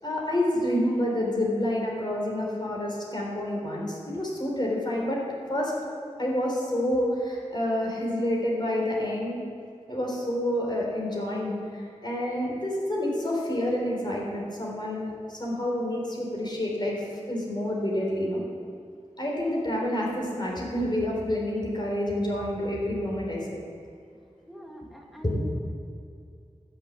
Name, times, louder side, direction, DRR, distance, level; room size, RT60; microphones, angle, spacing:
voice 1, 0.0-5.2 5.5-5.7 6.2-9.4 9.9-18.4 19.2-23.6 25.2-25.5, left 1 dB, 35° left, -3 dB, 3.7 m, -28 dB
voice 2, 24.5-25.5, equal, ahead, 0 dB, 2.0 m, -44 dB
12.0 x 6.9 x 8.2 m, 2.4 s
wide cardioid pair, 45°, 13 cm